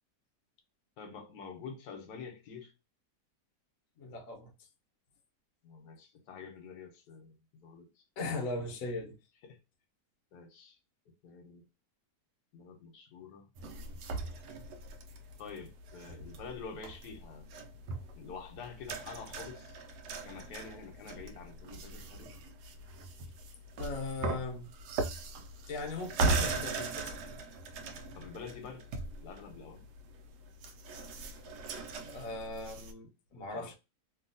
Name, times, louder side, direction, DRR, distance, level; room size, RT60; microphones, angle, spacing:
voice 1, 1.0-2.7 5.6-7.3 7.6-8.0 9.4-9.6 10.3-10.8 11.2-11.6 12.5-13.5 15.4-17.5 18.1-19.7 20.2-22.3 28.1-29.8 33.3-33.8, left 5 dB, 85° left, 1.3 m, -47 dB
voice 2, 4.0-4.5 8.2-9.2 23.8-24.7 25.7-27.1 32.1-33.8, left 3 dB, 60° left, 1.1 m, -39 dB
sound 1, 13.6-32.9, right 3 dB, 80° right, 1.1 m, -39 dB
2.8 x 2.7 x 2.6 m
omnidirectional pair, 1.7 m